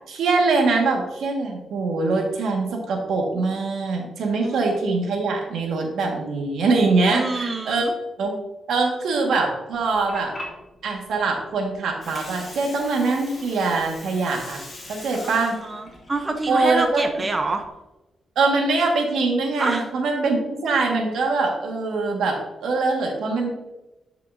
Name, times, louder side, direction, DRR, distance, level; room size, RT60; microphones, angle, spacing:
voice 1, 0.1-7.9 8.2-8.3 8.7-10.3 10.8-14.6 14.9-15.6 16.5-17.0 18.3-23.5, right 3 dB, 85° right, 1 dB, 1.6 m, -23 dB
voice 2, 7.1-7.9 15.1-17.6 19.6-19.9, right 3 dB, 20° right, 5 dB, 0.7 m, -27 dB
Water, 9.7-17.7, left 1 dB, 30° left, 2.3 m, -41 dB
11.0 x 5.7 x 2.6 m, 1.0 s
cardioid pair, 120°, 0 cm